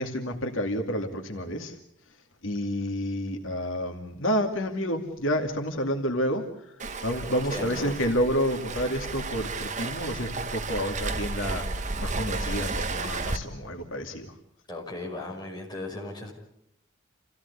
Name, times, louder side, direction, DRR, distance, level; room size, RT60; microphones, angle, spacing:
voice 1, 0.0-1.8 2.4-6.7 7.0-14.3, equal, 80° left, 3 dB, 2.4 m, -29 dB
Waves surf, 6.8-13.4, right 3 dB, 40° right, 1.2 m, -33 dB
voice 2, 7.5-8.0 14.7-16.3, left 2 dB, 20° left, -1 dB, 5.6 m, -37 dB
28.5 x 16.0 x 8.3 m, 0.78 s
head